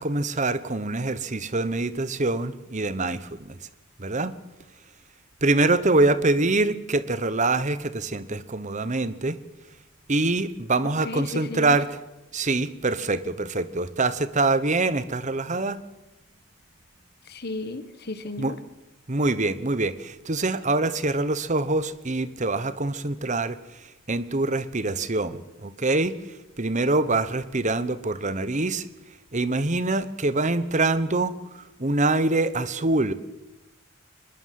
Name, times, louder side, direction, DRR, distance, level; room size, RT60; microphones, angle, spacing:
voice 1, 0.0-3.6 4.0-4.3 5.4-9.4 10.1-11.9 12.3-15.8 18.4-18.5 19.1-28.9 29.3-33.1, right 2 dB, 35° right, 15 dB, 1.1 m, -25 dB
voice 2, 11.0-11.8 17.2-18.6, left 2 dB, 50° left, 11 dB, 1.4 m, -34 dB
23.5 x 20.5 x 7.7 m, 0.98 s
head